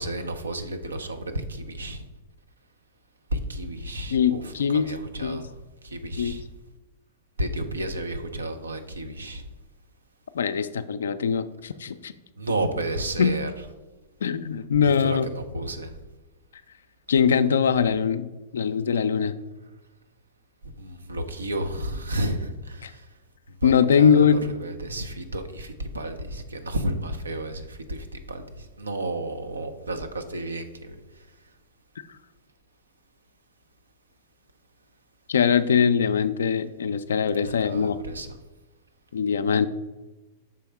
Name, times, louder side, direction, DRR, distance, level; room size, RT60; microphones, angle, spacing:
voice 1, 0.0-2.0 3.3-5.5 5.8-6.4 7.4-9.4 12.4-13.5 14.8-15.9 20.8-23.0 23.6-31.0 37.3-38.4, right 1 dB, 90° right, 7 dB, 0.6 m, -32 dB
voice 2, 4.1-4.9 5.2-5.4 6.2-6.4 10.3-12.1 13.2-13.4 14.2-15.3 17.1-19.3 22.8-22.9 23.6-24.4 35.3-38.0 39.1-39.7, left 7 dB, 75° left, 12 dB, 0.3 m, -22 dB
6.1 x 3.5 x 4.6 m, 1.1 s
hypercardioid pair, 105°, 0 cm